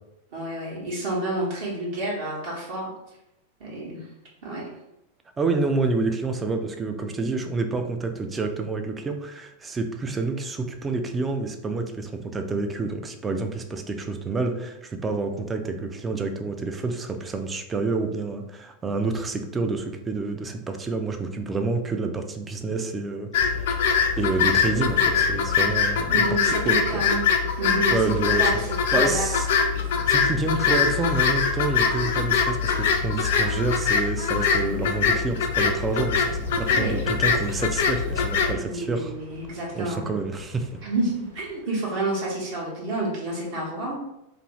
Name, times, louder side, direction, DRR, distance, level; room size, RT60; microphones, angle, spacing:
voice 1, 0.3-2.9 3.6-4.0 4.4-4.7 26.1-27.2 27.6-29.3 29.7-29.8 36.7-37.0 38.5-40.0 40.8-43.9, right 2 dB, 50° right, -5 dB, 0.9 m, -29 dB
voice 2, 5.4-23.3 23.7-27.0 27.9-28.6 28.9-29.5 30.1-39.1 39.7-40.8, right 3 dB, 15° right, 6 dB, 0.3 m, -28 dB
sound 1, 23.3-38.5, left 6 dB, 55° left, 0.4 m, -23 dB
sound 2, 35.5-41.6, right 2 dB, 85° right, 1.2 m, -42 dB
2.5 x 2.5 x 3.0 m, 0.88 s
figure-of-eight pair, 90°, 0 cm